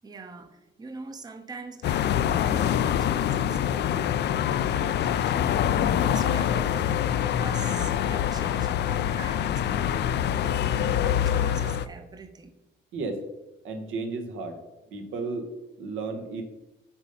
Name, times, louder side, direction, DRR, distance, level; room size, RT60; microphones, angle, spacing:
voice 1, 0.0-6.9 7.2-12.5, right 4 dB, 20° right, 0.7 m, -43 dB
sound 1, 1.8-11.9, left 10 dB, 60° left, 0.4 m, -25 dB
voice 2, 13.6-14.6 14.9-15.5 15.8-16.4, right 3 dB, 85° right, 1.2 m, -33 dB
7.1 x 4.0 x 5.5 m
cardioid pair, 90°, 20 cm